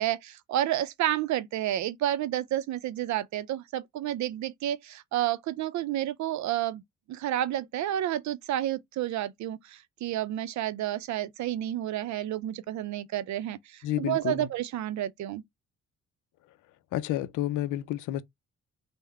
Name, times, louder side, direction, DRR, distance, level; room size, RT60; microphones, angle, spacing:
voice 1, 0.0-6.8 7.1-15.4, right 12 dB, 70° right, 0.5 m, -30 dB
voice 2, 13.8-14.5 16.9-18.2, left 13 dB, 80° left, 0.5 m, -30 dB
3.5 x 2.1 x 3.3 m
cardioid pair, 90°, 30 cm